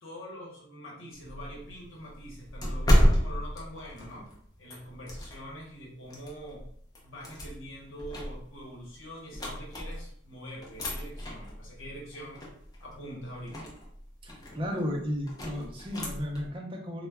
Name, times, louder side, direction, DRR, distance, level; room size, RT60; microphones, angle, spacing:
voice 1, 0.0-4.3 4.6-6.6 7.0-12.5 12.8-13.7, equal, 75° left, -3 dB, 0.9 m, -44 dB
sound 1, 1.1-5.6 6.1-10.2 10.6-16.5, equal, 20° left, 0.5 m, -31 dB
voice 2, 14.2-17.1, equal, 25° right, 0 dB, 0.5 m, -34 dB
2.2 x 2.1 x 3.3 m, 0.65 s
head